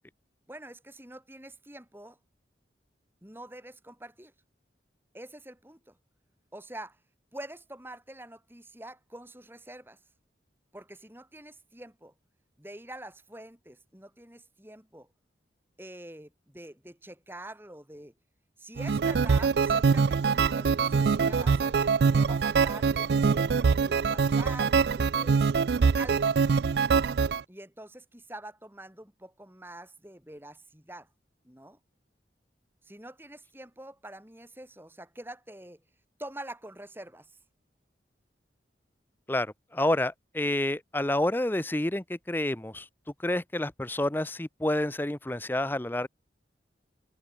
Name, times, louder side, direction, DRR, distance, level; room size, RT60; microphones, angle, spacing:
voice 1, 0.5-2.2 3.2-4.3 5.1-6.0 6.5-7.0 7.3-10.0 10.7-12.1 12.6-15.1 15.8-18.1 18.6-25.4 26.0-26.3 27.5-31.1 31.4-31.8 32.8-35.8 36.2-37.3, right 1 dB, 10° right, 3.5 m, -45 dB
sound 1, 18.8-27.4, right 5 dB, 65° right, 0.4 m, -24 dB
voice 2, 39.3-42.8 43.2-46.1, left 1 dB, 10° left, 0.6 m, -29 dB
head